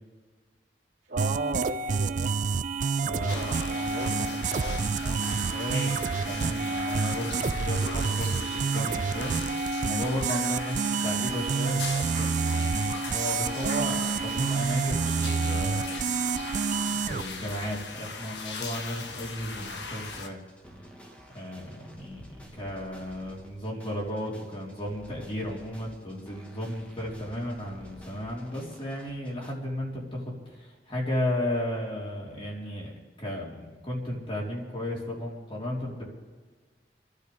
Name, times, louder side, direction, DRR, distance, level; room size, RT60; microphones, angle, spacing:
voice 1, 1.1-2.3 3.1-4.2 4.5-4.8 13.6-14.0, right 2 dB, 70° right, -9 dB, 2.3 m, -35 dB
sound 1, 1.2-17.2, right 5 dB, 45° right, 0.3 m, -28 dB
voice 2, 3.0-9.3 9.9-15.8 16.9-20.4 21.3-32.9 33.2-36.0, left 1 dB, 30° left, -4 dB, 3.8 m, -34 dB
sound 2, 3.3-20.3, left 4 dB, 85° left, 1.3 m, -39 dB
sound 3, 11.7-29.5, equal, 10° left, 1.6 m, -51 dB
27.5 x 12.0 x 3.5 m, 1.4 s
head